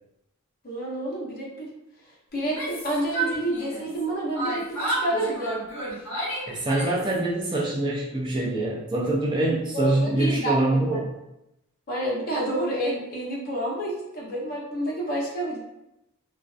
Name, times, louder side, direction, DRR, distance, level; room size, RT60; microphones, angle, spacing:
voice 1, 0.6-1.7 2.3-5.7 9.7-11.0 11.9-15.6, right 1 dB, 45° left, -3 dB, 0.6 m, -29 dB
Yell, 2.4-4.0 4.3-7.2, right 2 dB, 60° left, 1.1 m, -31 dB
voice 2, 6.5-11.1, right 2 dB, 20° right, -4 dB, 0.3 m, -25 dB
2.4 x 2.2 x 2.3 m, 0.89 s
head